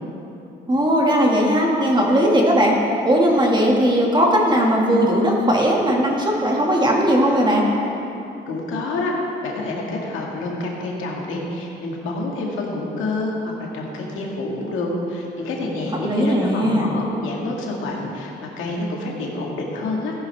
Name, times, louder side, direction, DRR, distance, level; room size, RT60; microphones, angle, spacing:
voice 1, 0.7-2.8 3.0-7.7 16.0-16.9, equal, 20° right, -2 dB, 2.1 m, -18 dB
voice 2, 8.5-9.1 9.4-20.1, left 2 dB, 85° left, -1 dB, 1.9 m, -28 dB
14.5 x 9.8 x 3.5 m, 2.9 s
cardioid pair, 90°, 20 cm